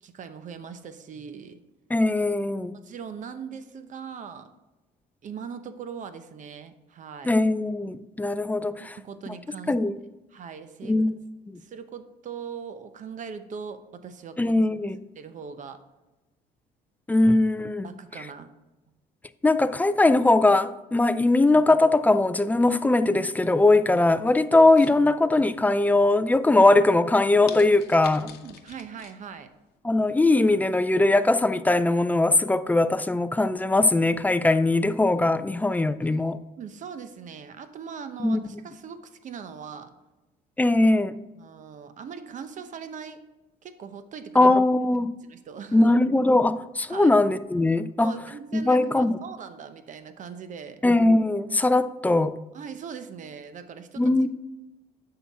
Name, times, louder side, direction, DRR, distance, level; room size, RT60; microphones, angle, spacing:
voice 1, 0.0-1.6 2.7-4.5 5.2-7.4 8.8-9.7 10.3-11.0 11.6-14.5 15.2-15.8 17.8-18.5 28.4-29.5 36.0-39.9 41.3-43.2 43.6-44.6 45.2-45.9 46.9-47.2 48.0-50.8 52.5-54.3, right 6 dB, 50° right, 0.8 m, -40 dB
voice 2, 1.9-2.8 7.2-9.0 9.7-10.0 10.8-11.1 11.5-11.6 14.4-15.0 17.1-17.9 19.4-28.3 29.8-36.4 38.2-38.5 40.6-41.2 44.3-45.1 45.7-48.1 48.5-49.2 50.8-52.3 54.0-54.3, left 2 dB, 10° left, 0.3 m, -20 dB
sound 1, 24.5-25.5 26.0-26.4 26.9-27.0 27.5-29.2 29.5-29.6, left 7 dB, 75° left, 0.8 m, -43 dB
8.4 x 5.8 x 3.5 m
cardioid pair, 110°, 17 cm